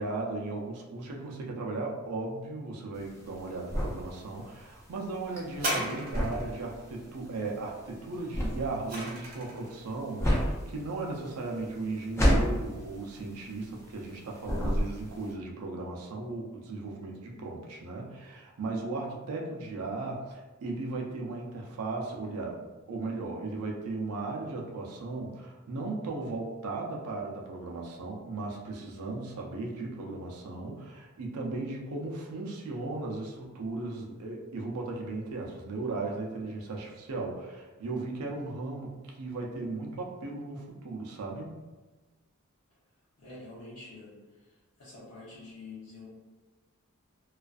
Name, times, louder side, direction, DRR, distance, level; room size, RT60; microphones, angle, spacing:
voice 1, 0.0-41.5, right 3 dB, 90° right, 0 dB, 0.5 m, -36 dB
sound 1, 3.0-14.1 14.4-15.3, equal, 10° left, 0.3 m, -30 dB
sound 2, 5.5-6.6 8.3-9.7 10.5-10.6, right 1 dB, 40° right, 0.6 m, -34 dB
voice 2, 17.1-17.4 43.2-44.1 44.8-46.1, left 3 dB, 90° left, -8 dB, 0.7 m, -47 dB
2.4 x 2.3 x 2.3 m, 1.2 s
head